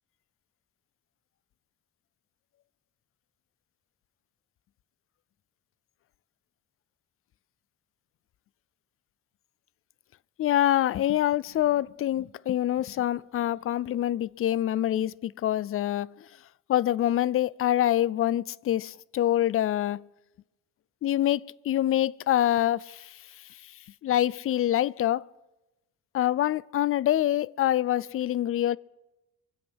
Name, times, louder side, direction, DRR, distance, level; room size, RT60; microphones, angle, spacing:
voice 1, 10.4-16.1 16.7-20.0 21.0-23.2 24.0-25.2 26.1-28.8, left 12 dB, 45° left, 0.4 m, -25 dB
24.0 x 8.1 x 6.2 m
cardioid pair, 90°, 30 cm